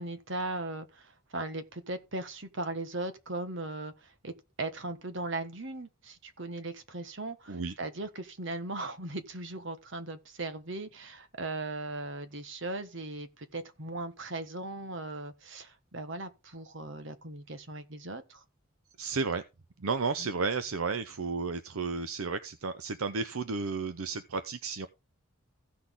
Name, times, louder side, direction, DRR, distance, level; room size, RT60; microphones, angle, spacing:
voice 1, 0.0-18.4 20.2-20.3, right 2 dB, 55° right, 1.4 m, -38 dB
voice 2, 19.0-19.4 19.8-24.9, right 4 dB, 75° right, 0.7 m, -32 dB
15.5 x 6.2 x 3.8 m
head